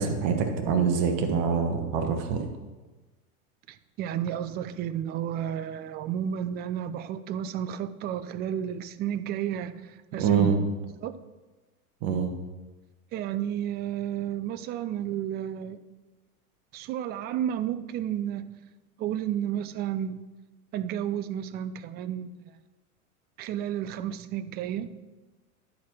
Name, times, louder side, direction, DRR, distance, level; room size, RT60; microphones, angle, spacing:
voice 1, 0.0-2.5 10.2-10.6 12.0-12.4, right 6 dB, 50° right, 5 dB, 1.3 m, -25 dB
voice 2, 3.7-10.5 11.0-11.2 13.1-15.8 16.7-18.5 19.0-20.3 20.7-22.5 23.4-25.0, right 10 dB, 25° right, 13 dB, 0.4 m, -32 dB
12.0 x 4.5 x 6.0 m, 1.2 s
hypercardioid pair, 105°, 45 cm